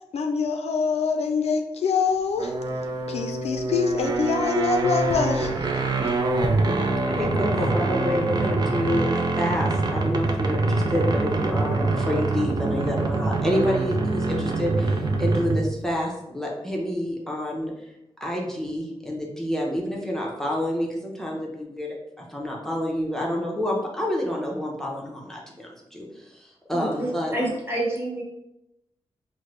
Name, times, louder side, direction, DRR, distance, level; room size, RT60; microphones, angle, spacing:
voice 1, 0.1-2.5 3.1-5.5, left 5 dB, 80° left, 5 dB, 0.4 m, -24 dB
sound 1, 2.4-15.8, right 3 dB, 40° right, 0.4 m, -25 dB
voice 2, 7.1-17.7 18.2-27.3, left 1 dB, 5° left, -2 dB, 0.6 m, -28 dB
voice 3, 26.7-28.2, right 1 dB, 20° right, -4 dB, 1.2 m, -28 dB
3.6 x 2.0 x 3.1 m, 0.85 s
wide cardioid pair, 90°, 11 cm